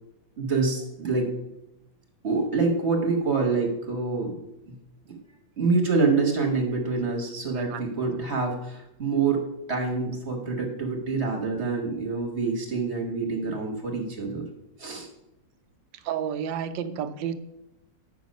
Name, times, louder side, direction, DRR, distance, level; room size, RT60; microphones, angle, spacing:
voice 1, 0.4-1.3 2.2-4.4 4.7-4.8 5.1-5.2 5.6-14.4 14.8-15.1, right 4 dB, 40° right, 3 dB, 1.2 m, -26 dB
voice 2, 15.9-17.3, right 8 dB, 80° right, 10 dB, 1.3 m, -30 dB
8.6 x 5.7 x 5.2 m, 0.88 s
omnidirectional pair, 2.0 m